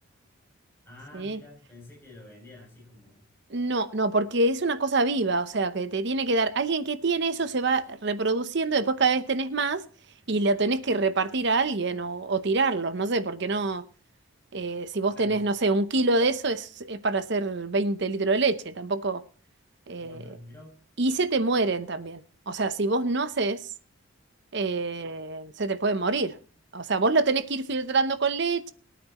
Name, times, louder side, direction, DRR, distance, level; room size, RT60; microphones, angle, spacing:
voice 1, 0.8-3.3 15.1-15.4 20.0-20.8, left 1 dB, 10° left, 7.9 m, -48 dB
voice 2, 3.5-9.8 10.3-13.8 14.5-19.2 19.9-20.2 21.0-23.6 24.5-26.4 26.7-28.7, right 3 dB, 55° right, 0.8 m, -26 dB
23.0 x 9.2 x 3.0 m
head